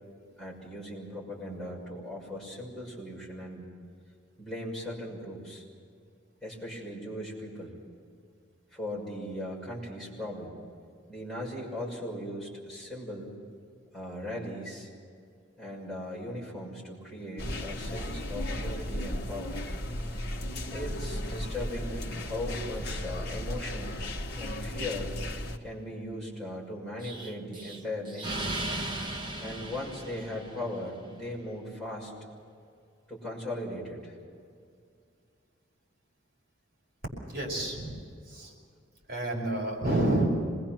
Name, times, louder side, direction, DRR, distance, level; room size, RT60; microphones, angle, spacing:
voice 1, 0.4-3.7 4.4-5.6 6.4-7.8 8.7-10.6 11.1-13.3 13.9-14.9 15.6-19.6 20.7-24.0 24.4-25.1 25.6-28.5 29.4-32.1 33.1-34.2, left 1 dB, 5° left, -5 dB, 6.3 m, -38 dB
sound 1, 17.4-25.6, left 1 dB, 50° left, 1.5 m, -35 dB
Explosion, 27.0-30.9, right 1 dB, 20° right, 1.6 m, -37 dB
voice 2, 37.3-38.5 39.1-40.3, right 1 dB, 45° right, -2 dB, 5.5 m, -29 dB
26.0 x 21.0 x 6.1 m, 2.3 s
head